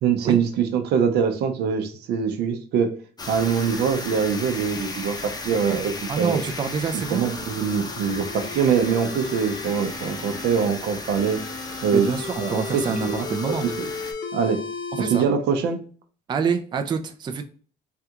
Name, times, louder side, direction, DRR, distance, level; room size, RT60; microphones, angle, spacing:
voice 1, 0.0-2.9 3.3-6.4 7.1-11.4 11.8-12.1 12.4-13.9 14.3-14.6 15.0-15.8, right 7 dB, 75° right, 7 dB, 0.6 m, -23 dB
Hull breach, 3.2-14.1, left 3 dB, 25° left, 0.6 m, -35 dB
voice 2, 6.1-7.3 11.9-13.7 14.9-15.3 16.3-17.4, right 5 dB, 25° right, 7 dB, 0.4 m, -26 dB
sound 1, 6.7-10.7 11.2-15.2, left 4 dB, 65° left, 0.9 m, -36 dB
3.4 x 2.4 x 2.8 m, 0.42 s
cardioid pair, 110°, 17 cm